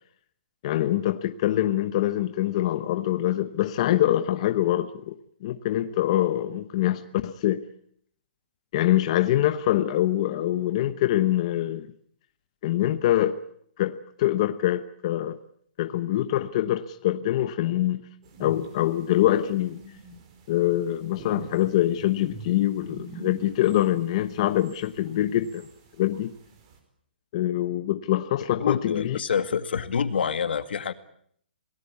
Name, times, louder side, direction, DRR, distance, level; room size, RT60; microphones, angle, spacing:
voice 1, 0.6-5.1 5.4-7.6 8.7-11.9 12.6-13.4 13.8-15.4 15.8-18.0 18.4-19.8 20.5-25.7 26.0-26.3 27.3-29.2, left 13 dB, 35° left, 1.0 m, -24 dB
sound 1, 18.2-26.8, right 2 dB, 30° right, 4.9 m, -45 dB
voice 2, 28.5-30.9, left 7 dB, 75° left, 2.1 m, -27 dB
27.5 x 18.5 x 8.5 m
hypercardioid pair, 170°, 6 cm